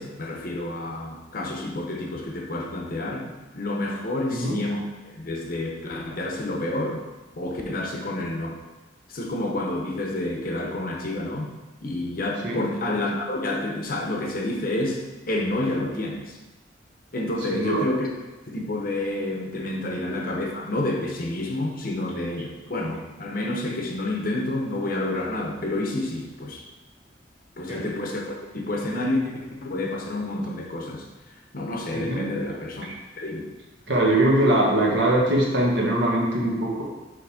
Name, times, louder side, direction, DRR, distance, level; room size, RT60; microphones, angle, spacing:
voice 1, 0.0-7.0 7.3-8.6 9.1-11.5 11.8-16.4 17.1-18.1 18.5-26.7 27.6-31.1 31.5-32.9 33.2-33.5, left 1 dB, 50° left, 1 dB, 0.9 m, -29 dB
voice 2, 4.3-4.8 12.4-12.6 17.5-17.8 27.7-27.8 31.9-32.3 32.8-32.9 33.9-36.8, right 1 dB, 70° right, -3 dB, 1.5 m, -22 dB
6.1 x 3.3 x 5.0 m, 1.1 s
head